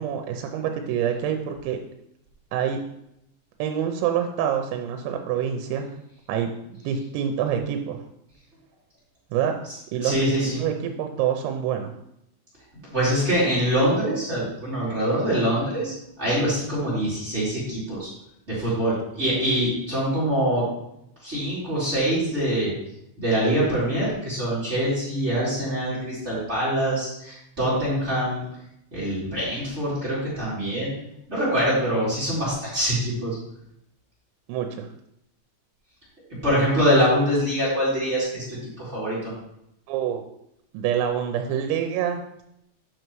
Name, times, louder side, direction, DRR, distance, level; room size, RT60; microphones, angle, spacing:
voice 1, 0.0-1.8 2.5-2.8 3.6-5.9 6.3-6.5 6.8-8.0 9.3-9.6 9.9-11.9 34.5-34.9 39.9-40.2 40.7-42.2, right 9 dB, 85° right, 5 dB, 3.3 m, -26 dB
voice 2, 10.0-10.6 12.9-18.1 18.5-20.6 21.2-22.7 23.2-28.4 28.9-30.9 31.3-33.4 36.4-39.2, equal, 20° right, -9 dB, 1.9 m, -24 dB
9.0 x 6.6 x 3.1 m, 0.79 s
omnidirectional pair, 5.9 m